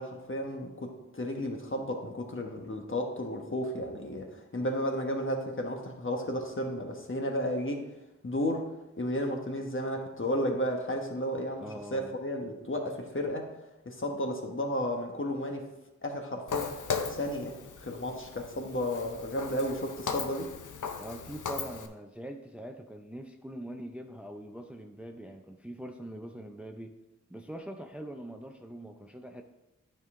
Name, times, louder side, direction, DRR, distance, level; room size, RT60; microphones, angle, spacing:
voice 1, 0.0-7.8 8.2-8.7 9.0-13.5 13.8-15.6 16.0-16.7 17.1-20.5, equal, 40° left, 3 dB, 1.2 m, -33 dB
voice 2, 11.6-12.1 21.0-27.0 27.3-29.4, right 1 dB, 5° right, 5 dB, 0.5 m, -43 dB
Walk footsteps, 16.5-21.9, left 5 dB, 80° left, 0.7 m, -37 dB
9.2 x 5.2 x 3.7 m, 0.98 s
wide cardioid pair, 50°, 30 cm